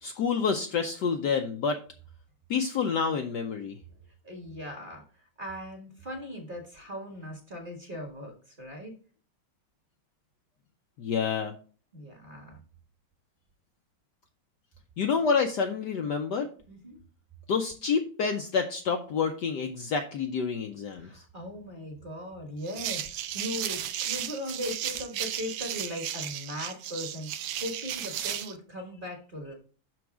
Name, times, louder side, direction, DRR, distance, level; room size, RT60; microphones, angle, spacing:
voice 1, 0.0-1.8 2.5-3.7 11.0-11.5 15.0-16.5 17.5-21.1, left 5 dB, 70° left, 5 dB, 1.1 m, -28 dB
voice 2, 4.1-8.9 11.9-12.6 16.7-17.0 20.9-29.5, left 1 dB, 25° right, 1 dB, 1.6 m, -39 dB
sound 1, 22.6-28.5, right 11 dB, 75° right, 1.3 m, -34 dB
6.2 x 4.6 x 6.0 m, 0.40 s
omnidirectional pair, 2.3 m